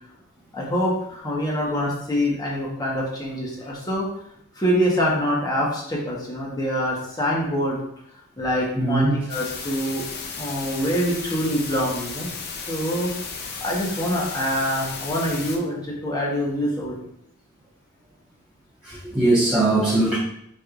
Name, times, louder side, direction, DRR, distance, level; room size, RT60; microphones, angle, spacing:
voice 1, 0.5-4.1 4.6-7.8 8.4-10.0 10.4-12.3 12.7-13.1 13.6-17.0, equal, 15° left, -4 dB, 1.2 m, -25 dB
voice 2, 8.8-9.1 18.8-20.2, right 2 dB, 5° right, -12 dB, 1.2 m, -20 dB
sound 1, 9.3-15.6, left 5 dB, 45° left, 0.6 m, -34 dB
4.7 x 4.2 x 2.5 m, 0.71 s
head